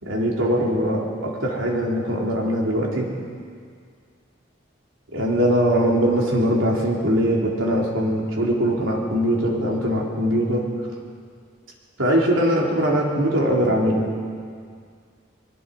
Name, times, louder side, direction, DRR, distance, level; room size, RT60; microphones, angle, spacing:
voice 1, 0.0-3.1 5.1-10.6 12.0-14.1, equal, 90° right, -2 dB, 3.8 m, -21 dB
22.5 x 21.0 x 5.5 m, 2.1 s
head